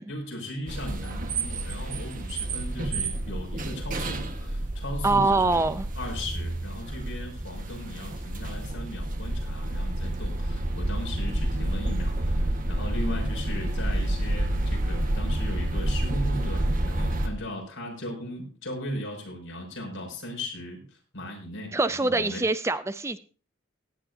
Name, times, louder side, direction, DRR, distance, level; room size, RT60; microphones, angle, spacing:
voice 1, 0.1-5.6 6.0-20.8 21.1-22.4, left 1 dB, 75° left, 1 dB, 6.1 m, -37 dB
sound 1, 0.7-17.3, right 1 dB, 45° right, 1.4 m, -29 dB
voice 2, 5.0-5.9 21.7-23.2, right 3 dB, 15° right, 13 dB, 0.4 m, -24 dB
17.5 x 11.0 x 2.7 m, 0.37 s
head